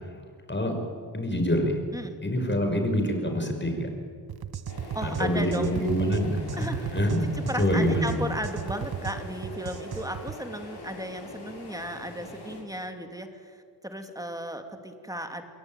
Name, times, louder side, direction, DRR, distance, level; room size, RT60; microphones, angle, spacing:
voice 1, 1.1-1.8 2.2-3.9 5.0-7.3 7.6-8.2, equal, 25° left, 4 dB, 5.7 m, -26 dB
sound 1, 4.3-10.4, right 8 dB, 65° right, 1.1 m, -36 dB
sound 2, 4.7-12.6, left 2 dB, 70° left, 7.2 m, -43 dB
voice 2, 4.9-5.8 6.6-15.4, right 1 dB, 10° right, 5 dB, 2.9 m, -35 dB
28.0 x 22.0 x 9.3 m, 2.1 s
wide cardioid pair, 95°, 41 cm